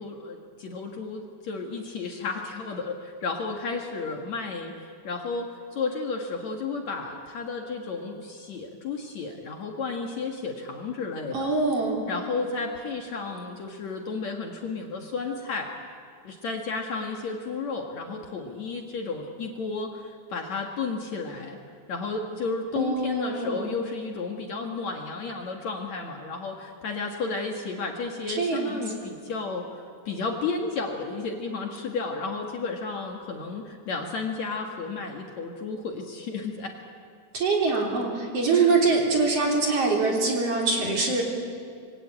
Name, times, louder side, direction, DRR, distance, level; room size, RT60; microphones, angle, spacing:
voice 1, 0.0-11.5 12.1-15.7 16.2-21.6 21.9-29.7 30.1-36.8, left 4 dB, 55° left, 2 dB, 2.6 m, -32 dB
voice 2, 11.3-12.0 22.8-23.7 28.4-28.8 37.3-41.2, right 3 dB, 40° right, -1 dB, 4.3 m, -24 dB
26.5 x 22.0 x 8.7 m, 2.2 s
omnidirectional pair, 4.3 m